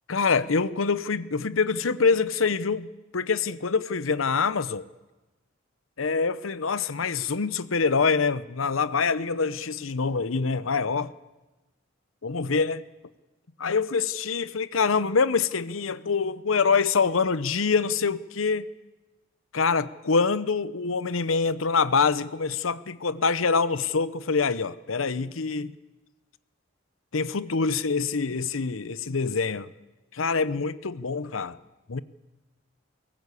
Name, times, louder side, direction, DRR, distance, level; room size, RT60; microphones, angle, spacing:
voice 1, 0.1-4.8 6.0-11.1 12.2-12.8 13.6-18.7 19.5-25.7 27.1-29.7 30.1-31.6 31.9-32.0, left 5 dB, 90° left, 0.8 m, -25 dB
22.5 x 19.0 x 8.3 m
head